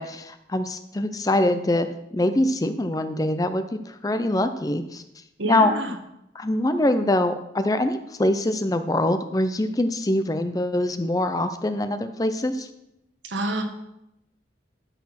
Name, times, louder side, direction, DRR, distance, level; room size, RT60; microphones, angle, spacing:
voice 1, 0.0-1.9 2.1-5.0 5.4-5.7 6.4-12.7, left 1 dB, 20° left, 10 dB, 0.5 m, -24 dB
voice 2, 5.4-5.9 13.3-13.6, right 2 dB, 85° right, 5 dB, 1.4 m, -27 dB
12.5 x 4.2 x 5.8 m, 0.84 s
head